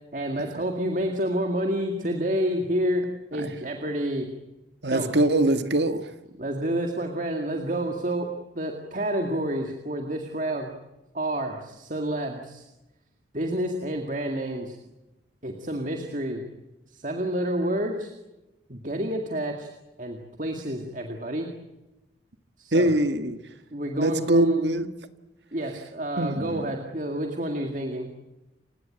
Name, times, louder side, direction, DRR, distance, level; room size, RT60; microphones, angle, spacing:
voice 1, 0.1-3.1 3.3-4.3 4.8-5.1 6.4-10.7 11.1-12.6 13.3-14.8 15.4-16.5 16.9-18.1 18.7-19.7 20.0-21.5 22.6-22.9 23.7-24.6 25.5-28.1, right 1 dB, 45° right, 2.1 m, -29 dB
voice 2, 4.8-6.1 22.7-23.4 24.0-24.9 26.2-26.7, right 1 dB, 75° right, 1.7 m, -23 dB
29.0 x 17.5 x 8.9 m
head